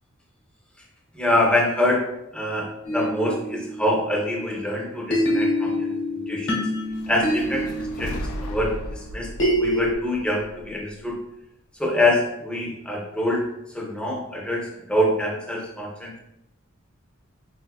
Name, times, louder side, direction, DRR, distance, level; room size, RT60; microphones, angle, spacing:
voice 1, 1.1-6.6 7.1-11.2 11.8-16.2, left 1 dB, 5° left, -2 dB, 0.5 m, -25 dB
sound 1, 2.8-4.6 5.1-9.9, equal, 60° left, 0.9 m, -26 dB
sound 2, 6.9-11.1, left 1 dB, 90° left, 0.4 m, -36 dB
4.2 x 2.3 x 2.3 m, 0.89 s
head